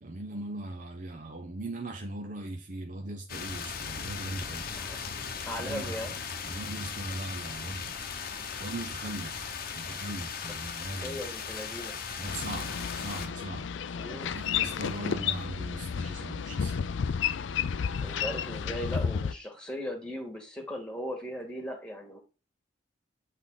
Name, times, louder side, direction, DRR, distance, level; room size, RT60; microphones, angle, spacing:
voice 1, 0.0-4.8 5.5-5.9 6.5-7.9 8.6-11.3 12.2-13.7 14.1-16.8, right 2 dB, 40° right, 0.8 m, -39 dB
sound 1, 3.3-13.3, left 6 dB, 50° left, 0.9 m, -38 dB
voice 2, 4.4-5.0 5.5-6.1 10.8-12.0 14.0-14.3 18.0-22.2, equal, 5° left, 1.8 m, -38 dB
Boat Water vehicle, 12.3-19.3, left 7 dB, 70° left, 0.4 m, -32 dB
8.0 x 3.7 x 3.8 m
head